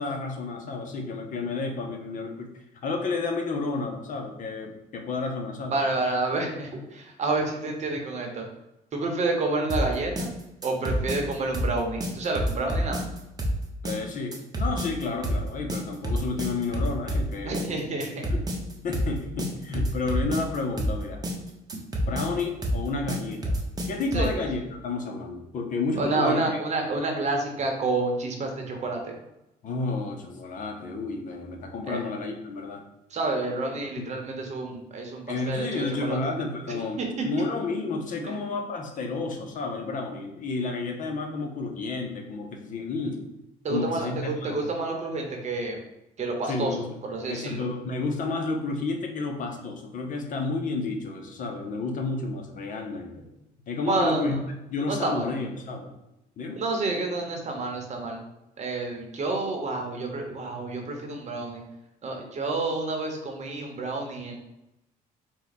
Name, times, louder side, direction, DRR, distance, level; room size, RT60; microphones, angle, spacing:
voice 1, 0.0-2.5 2.8-5.8 13.8-17.7 18.3-18.4 18.8-21.2 22.1-23.6 23.9-26.6 29.6-32.8 34.0-34.1 35.3-43.2 43.7-44.6 46.4-46.9 47.3-53.3 53.7-54.4 54.7-55.9 56.4-56.6, left 3 dB, 50° left, 3 dB, 0.7 m, -31 dB
voice 2, 5.7-8.4 8.9-10.3 10.6-13.0 17.4-18.3 24.1-24.3 26.0-29.1 31.9-32.0 33.1-36.2 36.7-37.3 43.6-45.8 46.2-46.8 47.1-47.6 53.9-54.4 54.9-55.3 56.6-58.2 58.6-61.6 62.0-64.3, right 3 dB, 45° right, 2 dB, 0.9 m, -29 dB
sound 1, 9.7-24.4, equal, 25° right, 0.8 m, -28 dB
4.4 x 2.3 x 4.0 m, 0.91 s
cardioid pair, 110°, 17 cm